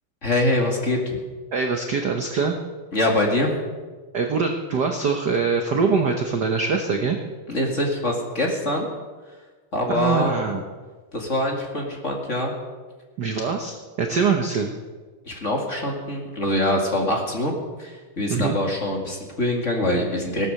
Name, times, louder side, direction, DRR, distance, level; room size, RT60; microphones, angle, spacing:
voice 1, 0.2-1.2 2.9-3.5 7.5-8.9 9.7-10.3 11.1-12.5 15.3-17.5 17.8-20.5, left 1 dB, 25° left, 0 dB, 2.1 m, -24 dB
voice 2, 1.5-2.6 4.1-7.2 9.9-10.6 13.2-14.7 18.3-18.6, right 5 dB, 65° right, 4 dB, 1.0 m, -23 dB
17.0 x 12.5 x 6.6 m, 1.4 s
omnidirectional pair, 3.5 m